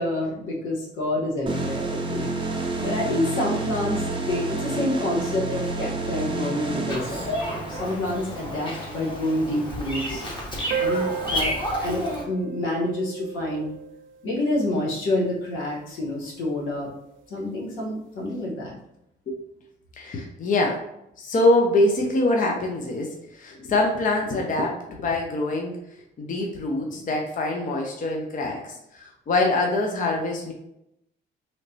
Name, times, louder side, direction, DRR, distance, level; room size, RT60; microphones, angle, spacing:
voice 1, 0.0-2.3 2.8-10.2 10.8-13.7 14.2-16.9 17.3-18.7, left 1 dB, 85° left, -3 dB, 1.1 m, -28 dB
sound 1, 1.5-7.9, right 2 dB, 25° right, 0.6 m, -29 dB
Bird vocalization bird call bird song, 6.9-12.2, equal, 25° left, 1.1 m, -31 dB
sound 2, 10.7-15.7, right 7 dB, 75° right, 0.5 m, -34 dB
voice 2, 20.0-20.8 21.2-25.7 26.2-30.5, left 2 dB, 40° left, 1 dB, 0.6 m, -24 dB
3.1 x 3.0 x 2.7 m, 0.81 s
cardioid pair, 90°, 20 cm